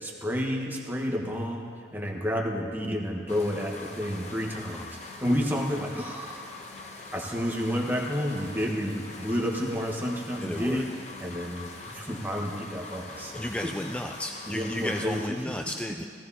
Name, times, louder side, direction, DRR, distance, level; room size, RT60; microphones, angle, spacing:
voice 1, 0.0-6.5 7.1-10.9 11.2-13.7 14.5-15.6, equal, 10° right, 0 dB, 1.2 m, -30 dB
sound 1, 3.3-15.3, left 3 dB, 40° left, 0.9 m, -43 dB
voice 2, 10.4-10.8 13.4-16.1, left 1 dB, 5° left, 4 dB, 0.3 m, -33 dB
16.5 x 15.5 x 2.8 m, 2.2 s
head